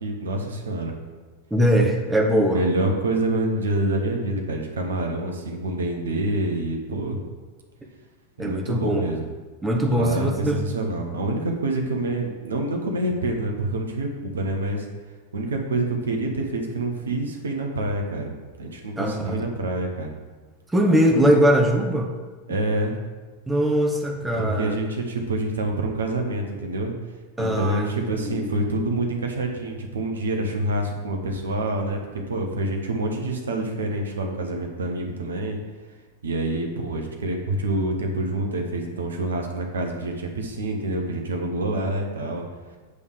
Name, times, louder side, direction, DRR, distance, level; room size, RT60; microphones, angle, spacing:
voice 1, 0.0-0.9 2.5-7.2 8.4-9.3 9.9-14.9 15.3-18.3 18.6-20.2 22.5-22.9 24.3-26.9 27.4-32.0 32.3-35.6 36.2-42.4, right 2 dB, 70° right, 2 dB, 1.1 m, -27 dB
voice 2, 1.5-2.6 8.4-9.1 9.6-10.6 19.0-19.3 20.7-22.1 23.5-24.8 27.4-28.5, equal, 10° right, 1 dB, 1.0 m, -21 dB
8.3 x 3.6 x 6.4 m, 1.3 s
figure-of-eight pair, 90°, 0 cm